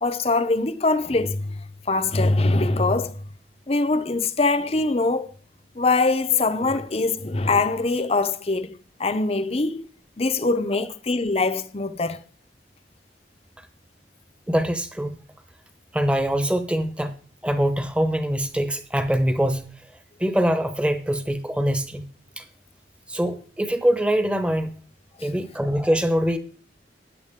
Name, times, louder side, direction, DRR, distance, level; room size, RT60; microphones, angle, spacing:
voice 1, 0.0-3.2 3.7-5.3 5.8-9.9 10.2-12.2, left 3 dB, 35° left, 0.7 m, -23 dB
voice 2, 14.5-15.2 15.9-17.1 17.4-19.7 20.2-22.0 22.4-22.5 23.1-24.7 25.2-26.4, equal, 5° right, 0.9 m, -23 dB
13.0 x 9.5 x 3.6 m
head